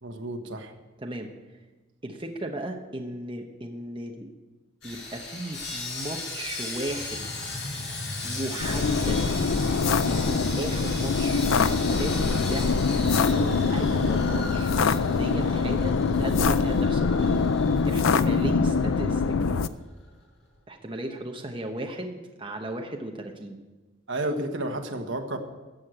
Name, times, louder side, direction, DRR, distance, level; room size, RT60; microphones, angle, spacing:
voice 1, 0.0-0.7 24.1-25.4, right 1 dB, 65° right, 5 dB, 1.3 m, -31 dB
voice 2, 1.0-1.3 2.0-4.3 4.8-7.5 8.2-9.6 10.0-14.7 15.1-17.4 17.8-19.6 20.7-23.6, right 1 dB, 25° right, 2 dB, 1.0 m, -36 dB
Sawing, 4.8-19.1 19.3-19.5 20.0-20.1, left 2 dB, 60° left, 5.9 m, -37 dB
sound 1, 6.9-17.4, left 2 dB, 35° left, 0.8 m, -38 dB
sound 2, 8.6-19.7, left 4 dB, 80° left, 0.5 m, -24 dB
14.5 x 6.5 x 8.7 m, 1.2 s
head